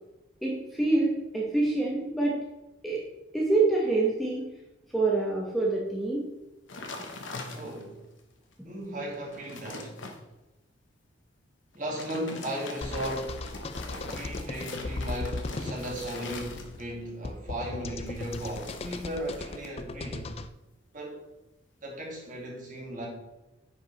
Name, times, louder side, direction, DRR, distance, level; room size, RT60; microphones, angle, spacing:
voice 1, 0.4-2.4 2.8-3.0 3.3-4.5 4.9-6.3, right 3 dB, ahead, -3 dB, 1.0 m, -26 dB
sound 1, 6.7-8.0 8.5-8.6 9.0-10.2 11.7-17.0 18.0-19.7 20.0-20.4, left 3 dB, 70° left, 1.1 m, -42 dB
voice 2, 7.6-8.0 8.6-10.0 11.7-13.5 13.9-20.3 20.9-21.2 21.8-23.1, right 1 dB, 40° right, -3 dB, 2.1 m, -36 dB
sound 2, 12.8-20.5, left 2 dB, 30° left, 0.4 m, -37 dB
9.6 x 4.8 x 4.1 m, 1.0 s
head